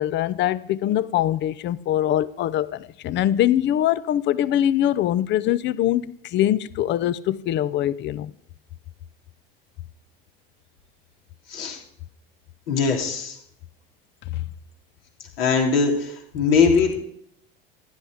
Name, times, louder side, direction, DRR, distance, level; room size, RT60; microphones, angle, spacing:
voice 1, 0.0-8.3, left 12 dB, 40° left, 0.7 m, -23 dB
voice 2, 12.7-13.4 15.4-17.0, left 5 dB, 70° left, 3.6 m, -21 dB
16.0 x 11.5 x 5.0 m
hypercardioid pair, 80°, 30 cm